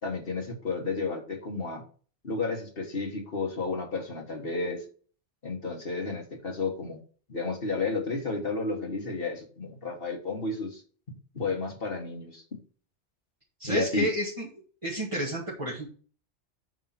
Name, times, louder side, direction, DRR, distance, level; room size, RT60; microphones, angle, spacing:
voice 1, 0.0-1.8 2.2-4.8 5.4-7.0 7.3-10.8 11.4-12.4 13.6-14.1, left 3 dB, 55° left, 2 dB, 1.7 m, -32 dB
voice 2, 13.6-14.5 14.8-15.9, equal, 25° right, -4 dB, 1.8 m, -30 dB
9.3 x 3.7 x 5.8 m, 0.41 s
omnidirectional pair, 1.2 m